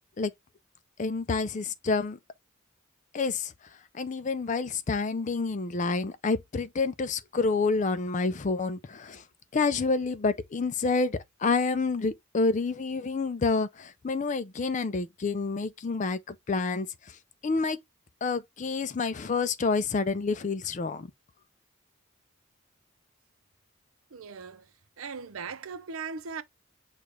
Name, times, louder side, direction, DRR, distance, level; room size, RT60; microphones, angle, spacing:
voice 1, 1.0-2.2 3.1-3.5 3.9-9.2 9.5-16.9 17.4-17.8 18.2-21.1, left 4 dB, 35° left, 0.4 m, -28 dB
voice 2, 24.1-24.6 25.0-26.4, right 5 dB, 90° right, 0.6 m, -38 dB
6.5 x 2.4 x 3.2 m
head